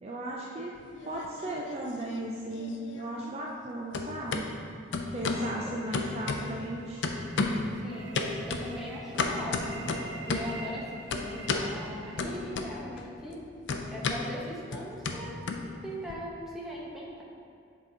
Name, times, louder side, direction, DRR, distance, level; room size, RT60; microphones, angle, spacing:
voice 1, 0.0-0.7 1.0-4.5 5.1-7.0, right 1 dB, 35° right, -2 dB, 0.4 m, -36 dB
sound 1, 0.8-1.8 2.1-3.7 3.9-4.4 4.9-5.5 5.9-6.7 7.0-7.7 8.1-10.6 11.1-11.7 12.2-13.0 13.3-16.1, left 3 dB, 80° left, 0.5 m, -32 dB
voice 2, 5.3-5.7 7.8-9.9 10.2-13.4 13.9-15.4 15.8-17.2, equal, ahead, -5 dB, 0.9 m, -40 dB
sound 2, 5.3-12.2, right 2 dB, 75° right, 0.9 m, -46 dB
7.2 x 4.1 x 3.8 m, 2.3 s
head